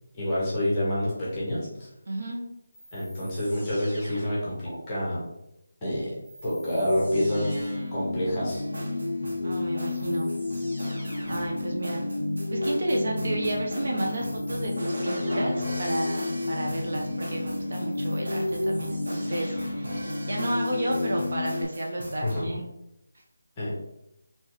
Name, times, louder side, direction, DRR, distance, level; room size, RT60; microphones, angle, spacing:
voice 1, 0.1-1.9 2.9-5.2 5.8-6.1 6.4-8.7 22.2-22.4 23.6-23.7, left 1 dB, 10° left, -7 dB, 0.8 m, -28 dB
voice 2, 2.1-2.4 9.4-10.3 11.3-12.1 12.5-20.0 20.3-22.6, right 1 dB, 45° right, 0 dB, 0.5 m, -32 dB
sound 1, 2.7-4.8 6.2-8.1 9.3-9.4 9.8-11.7 14.0-15.8 17.5-20.0, equal, 10° right, 1.3 m, -47 dB
sound 2, 6.8-21.6, left 2 dB, 65° left, 0.4 m, -30 dB
sound 3, 8.5-22.3, right 1 dB, 60° right, 1.2 m, -39 dB
3.3 x 2.8 x 3.0 m, 0.86 s
figure-of-eight pair, 180°, 0 cm